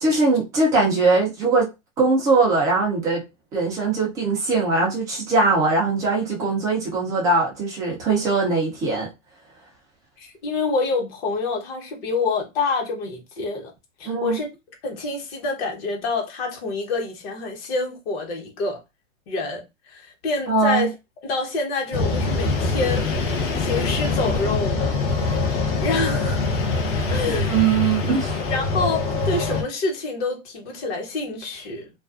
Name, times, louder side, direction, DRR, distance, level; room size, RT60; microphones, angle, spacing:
voice 1, 0.0-1.7 2.0-3.2 3.5-9.1 14.1-14.4 20.5-20.9 27.3-28.4, right 3 dB, 10° right, 0.3 m, -21 dB
voice 2, 10.2-13.7 14.0-14.5 14.8-18.8 19.3-20.9 21.2-23.1 23.6-24.9 25.8-26.4 27.1-27.6 28.5-31.9, left 3 dB, 50° left, 1.1 m, -27 dB
sound 1, 21.9-29.6, left 3 dB, 30° left, 0.7 m, -24 dB
2.4 x 2.3 x 2.4 m
hypercardioid pair, 140°, 39 cm